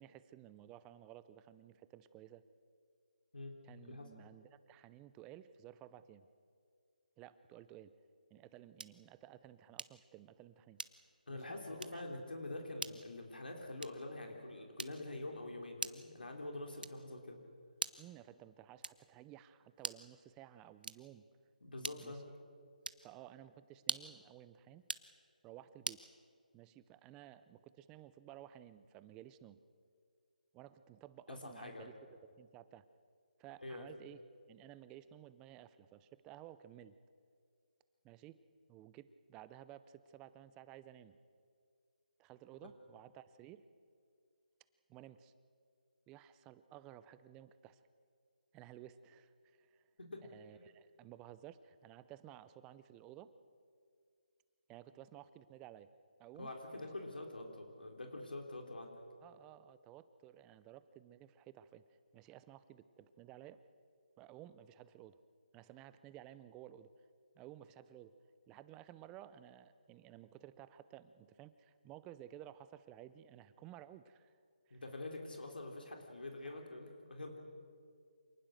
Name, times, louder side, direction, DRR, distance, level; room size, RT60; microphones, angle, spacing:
voice 1, 0.0-2.4 3.6-6.3 7.2-7.9 8.3-10.8 11.3-11.5 11.9-12.0 18.0-21.2 22.0-22.2 23.0-24.9 25.4-26.0 26.5-29.6 30.5-32.8 33.4-34.2 34.5-36.9 38.0-38.4 38.7-41.2 42.2-43.6 44.9-45.3 46.1-47.8 48.5-49.9 50.2-53.3 54.7-55.9 56.2-56.5 59.2-61.8 62.1-63.6 64.2-65.2 65.5-66.9 67.3-68.1 68.5-74.4 74.7-74.8 76.4-76.6, right 12 dB, 15° right, 14 dB, 0.5 m, -55 dB
sound 1, 8.8-9.1 9.8-10.1 10.8-11.2 11.8-12.1 12.8-13.1 13.8-14.1 14.8-15.2 15.8-16.2 16.8-17.2 17.8-18.2 18.8-19.2 19.8-20.2 20.8-21.2 21.8-22.2 22.8-23.1 23.8-24.2 24.8-25.1 25.8-26.1, right 3 dB, 80° right, 1.0 m, -43 dB
voice 2, 11.3-17.4 21.6-22.2 31.3-31.9 33.6-33.9 50.0-50.2 56.4-59.0 74.7-77.4, left 2 dB, 85° left, 2 dB, 3.8 m, -46 dB
27.0 x 19.5 x 6.6 m, 2.2 s
figure-of-eight pair, 160°, 5 cm